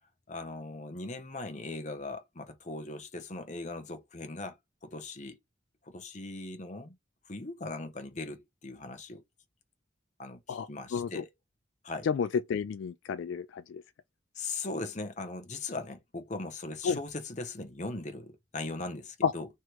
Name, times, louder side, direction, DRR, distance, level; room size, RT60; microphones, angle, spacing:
voice 1, 0.3-4.6 4.8-5.4 5.8-6.9 7.2-9.2 10.2-11.3 11.8-12.1 14.3-19.5, left 2 dB, 35° left, 0.8 m, -39 dB
voice 2, 10.5-11.2 12.0-13.8 16.8-17.0 19.2-19.3, left 6 dB, 70° left, 0.3 m, -31 dB
3.3 x 3.1 x 4.5 m
head